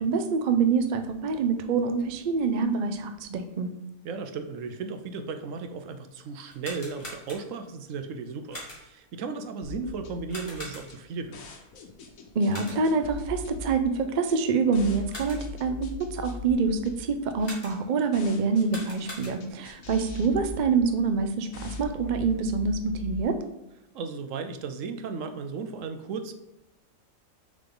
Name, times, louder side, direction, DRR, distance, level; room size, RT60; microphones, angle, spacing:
voice 1, 0.0-3.7 12.3-23.4, right 4 dB, 55° right, 7 dB, 0.5 m, -26 dB
voice 2, 4.0-11.4 23.9-26.3, right 4 dB, 70° right, 8 dB, 1.0 m, -35 dB
sound 1, 6.5-7.7 8.5-9.1 10.3-11.2 12.5-13.1 14.9-15.6 17.4-18.0 18.5-19.7, left 1 dB, 40° left, 2.5 m, -43 dB
sound 2, 9.6-23.2, left 3 dB, 75° left, 1.3 m, -41 dB
6.7 x 3.8 x 3.8 m, 0.91 s
omnidirectional pair, 1.4 m